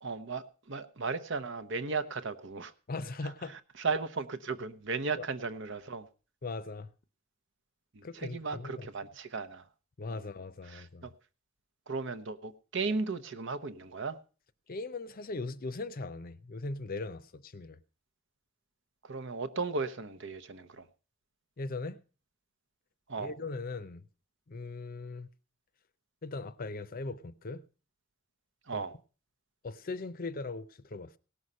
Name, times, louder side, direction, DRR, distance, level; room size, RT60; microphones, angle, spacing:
voice 1, 0.0-2.7 3.8-6.1 7.9-9.6 10.1-10.2 10.7-11.1 11.9-14.2 19.0-20.9 23.1-23.3 28.7-28.9, right 4 dB, 60° right, 0.8 m, -36 dB
voice 2, 2.9-3.6 5.2-5.3 6.4-6.9 8.0-8.9 10.0-11.1 14.7-17.8 21.6-22.0 23.2-24.1 24.5-25.3 26.2-27.6 28.7-28.8 29.6-31.2, left 3 dB, 45° left, 0.6 m, -39 dB
17.5 x 6.4 x 5.4 m
head